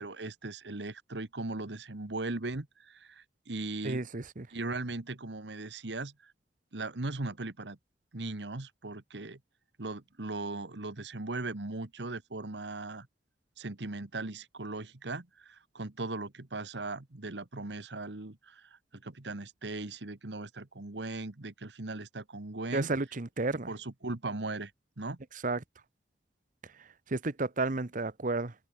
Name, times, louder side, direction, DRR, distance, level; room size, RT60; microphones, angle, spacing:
voice 1, 0.0-4.0 4.5-6.3 6.7-7.8 8.1-9.4 9.8-13.1 13.6-22.9 23.7-24.7 25.0-25.2, right 2 dB, 80° right, 1.5 m, -38 dB
voice 2, 3.8-4.5 22.7-23.7 25.3-25.6 26.6-28.5, right 3 dB, 50° right, 1.0 m, -32 dB
head